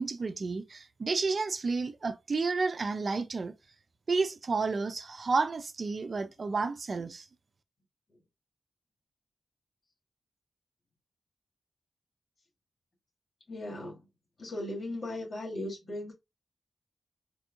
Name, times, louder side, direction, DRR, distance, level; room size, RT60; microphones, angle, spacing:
voice 1, 0.0-3.5 4.1-7.3, right 4 dB, 60° right, 0.5 m, -31 dB
voice 2, 13.5-14.1 14.4-16.1, left 1 dB, 60° left, 2.5 m, -37 dB
4.4 x 2.7 x 2.5 m
cardioid pair, 45°, 0 cm